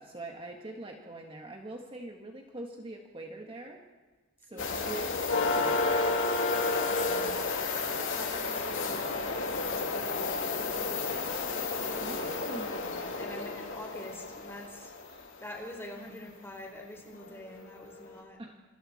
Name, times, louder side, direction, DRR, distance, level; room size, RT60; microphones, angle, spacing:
voice 1, 0.0-3.9 4.4-6.3 8.2-8.3 12.0-13.0 15.1-15.3 16.0-16.3 18.4-18.6, right 2 dB, 25° right, 2 dB, 1.7 m, -44 dB
voice 2, 4.5-4.9 6.9-7.6 7.8-12.3 13.1-14.9 15.4-18.4, left 1 dB, 10° left, 1 dB, 4.3 m, -46 dB
sound 1, 4.6-15.2 17.2-17.3 17.9-18.0, left 3 dB, 65° left, 3.4 m, -31 dB
26.5 x 26.5 x 4.3 m, 1.3 s
head